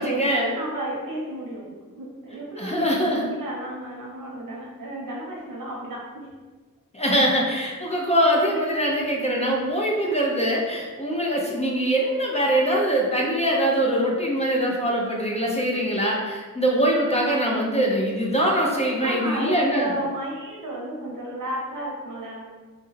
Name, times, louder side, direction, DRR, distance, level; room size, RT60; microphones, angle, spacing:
voice 1, 0.0-0.5 2.6-3.3 6.9-19.9, equal, 20° left, -2 dB, 0.4 m, -23 dB
voice 2, 0.5-6.3 19.0-22.5, right 1 dB, 70° right, -2 dB, 0.8 m, -32 dB
3.1 x 2.3 x 3.1 m, 1.4 s
wide cardioid pair, 115°, 34 cm